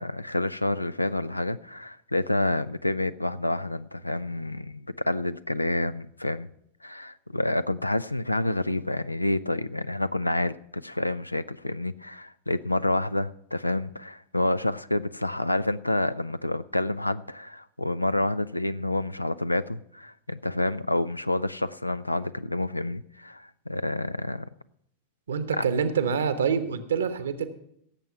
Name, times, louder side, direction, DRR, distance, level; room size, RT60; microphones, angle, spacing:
voice 1, 0.0-6.5 6.8-24.5 25.6-25.7, left 1 dB, 85° left, 16 dB, 0.4 m, -28 dB
voice 2, 25.3-27.5, right 6 dB, 65° right, 12 dB, 1.1 m, -26 dB
17.0 x 7.6 x 5.8 m, 0.72 s
figure-of-eight pair, 90°, 0 cm